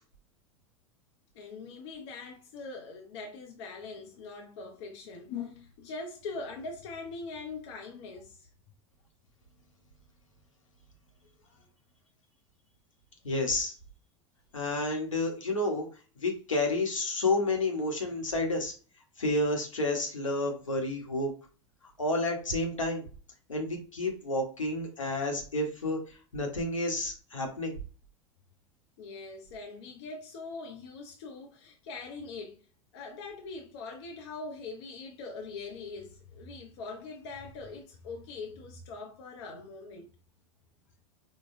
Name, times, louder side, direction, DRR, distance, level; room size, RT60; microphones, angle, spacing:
voice 1, 1.3-8.5 11.4-11.7 29.0-32.6 32.9-40.1, left 4 dB, 60° left, 0.7 m, -42 dB
voice 2, 13.2-13.7 14.5-15.9 16.2-18.7 19.2-21.3 22.0-23.0 23.5-26.0 26.3-27.7, left 2 dB, 85° left, 1.0 m, -30 dB
4.6 x 2.2 x 2.6 m
figure-of-eight pair, 90°, 16 cm